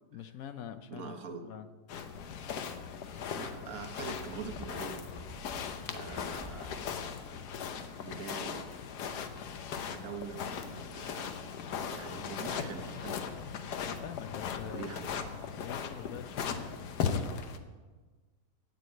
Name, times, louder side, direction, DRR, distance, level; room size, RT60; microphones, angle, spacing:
voice 1, 0.1-1.2 1.4-1.7 10.0-10.1 13.8-14.9 15.5-16.5, left 9 dB, 70° left, 10 dB, 1.0 m, -44 dB
voice 2, 0.9-1.4 3.3-5.1 5.9-7.1 8.0-8.7 9.8-11.4 11.9-13.2 14.6-15.5, right 5 dB, 65° right, 7 dB, 1.4 m, -44 dB
sound 1, 1.9-17.6, left 7 dB, 85° left, 1.4 m, -38 dB
sound 2, 4.2-8.8 9.0-9.1, equal, 10° right, 1.4 m, -52 dB
8.4 x 8.1 x 9.1 m, 1.3 s
omnidirectional pair, 1.7 m